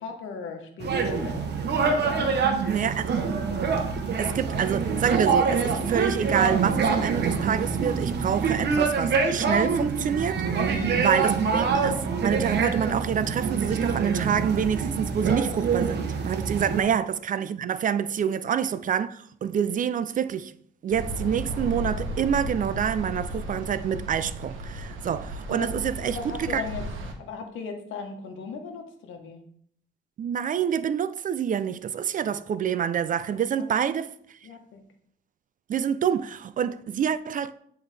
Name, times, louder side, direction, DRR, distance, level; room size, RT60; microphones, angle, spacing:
voice 1, 0.0-1.5 1.9-2.7 10.7-11.0 16.5-16.7 18.0-18.1 25.5-26.8 27.2-29.4 33.3-33.4 34.4-34.8, left 4 dB, 80° left, 1.1 m, -37 dB
sound 1, 0.8-16.8, right 5 dB, 60° right, 1.0 m, -25 dB
voice 2, 2.6-3.2 4.2-20.5 20.8-26.6 30.2-34.1 35.7-37.5, right 8 dB, 40° right, 0.4 m, -27 dB
sound 2, 20.9-27.1, right 1 dB, 85° right, 1.0 m, -34 dB
9.2 x 3.5 x 3.3 m
cardioid pair, 90°, 20 cm